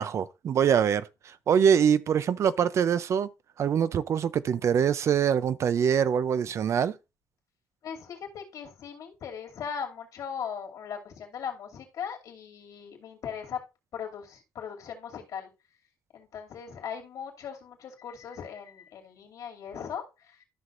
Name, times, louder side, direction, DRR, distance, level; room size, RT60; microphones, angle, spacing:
voice 1, 0.0-3.3 3.6-6.9, right 8 dB, 50° right, 0.5 m, -24 dB
voice 2, 7.8-13.6 13.9-15.5 16.1-20.4, left 7 dB, 70° left, 2.5 m, -39 dB
12.5 x 5.9 x 2.5 m
cardioid pair, 130°, 6 cm